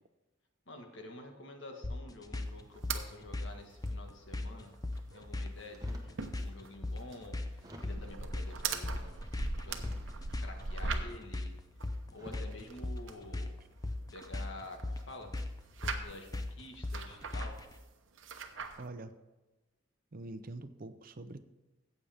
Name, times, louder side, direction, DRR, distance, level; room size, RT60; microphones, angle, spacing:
voice 1, 0.7-4.7 5.1-9.2 9.6-10.0 10.4-11.5 12.1-13.5 14.1-15.3 15.8-17.6, left 2 dB, 75° left, 4 dB, 1.6 m, -49 dB
sound 1, 1.8-17.7, left 2 dB, 20° left, 0.6 m, -39 dB
sound 2, 2.8-3.1 3.4-3.5 3.7-3.9 4.3-4.4 4.7-5.3 5.6-11.3 11.8-13.2 13.7-15.1 15.4-16.4 16.8-17.8 18.2-18.9, right 4 dB, 90° right, 0.9 m, -41 dB
sound 3, 5.7-6.2 6.9-7.0 7.6-8.3 9.6-10.4 11.5-11.7 12.1-12.6 13.2-13.5, equal, 20° right, 1.1 m, -51 dB
voice 2, 18.8-19.1 20.1-21.5, right 2 dB, 50° right, 11 dB, 0.6 m, -45 dB
14.0 x 8.3 x 3.5 m, 1.1 s
head